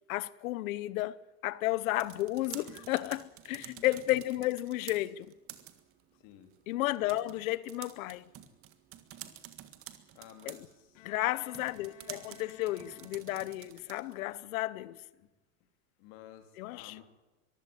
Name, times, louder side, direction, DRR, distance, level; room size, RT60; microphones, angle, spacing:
voice 1, 0.1-5.3 6.7-8.3 10.5-10.6 11.0-15.0 16.6-17.0, left 17 dB, 90° left, 1.0 m, -33 dB
sound 1, 1.7-14.3, right 12 dB, 35° right, 1.7 m, -50 dB
voice 2, 3.6-4.0 6.1-6.5 10.1-11.1 15.1-15.3 16.0-17.0, left 11 dB, 50° left, 3.4 m, -53 dB
Bowed string instrument, 10.9-13.7, left 11 dB, 70° left, 2.3 m, -56 dB
23.5 x 15.0 x 8.9 m
supercardioid pair, 170°, 40 cm